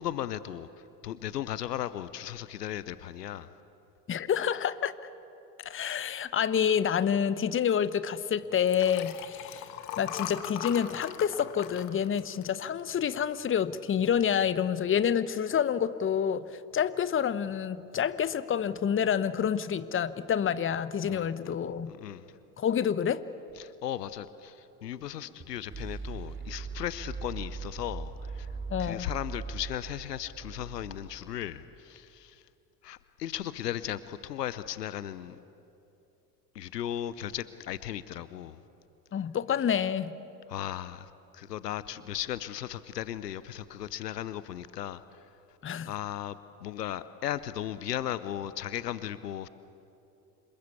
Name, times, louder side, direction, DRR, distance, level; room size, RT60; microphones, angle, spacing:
voice 1, 0.0-3.5 21.1-21.5 21.9-22.3 23.6-28.5 28.8-32.5 32.8-35.4 36.5-38.6 40.5-45.6 45.8-49.5, left 11 dB, 80° left, 0.8 m, -36 dB
voice 2, 4.1-4.9 5.6-16.5 16.7-21.9 22.6-23.2 28.7-29.1 39.1-40.2 45.6-45.9, left 8 dB, 25° left, 1.0 m, -28 dB
Liquid, 8.6-13.2 13.7-14.0 14.2-14.3, left 11 dB, 60° left, 1.6 m, -40 dB
sound 1, 23.5-31.6, right 4 dB, 25° right, 2.5 m, -41 dB
27.0 x 22.0 x 8.4 m
figure-of-eight pair, 60°, 48 cm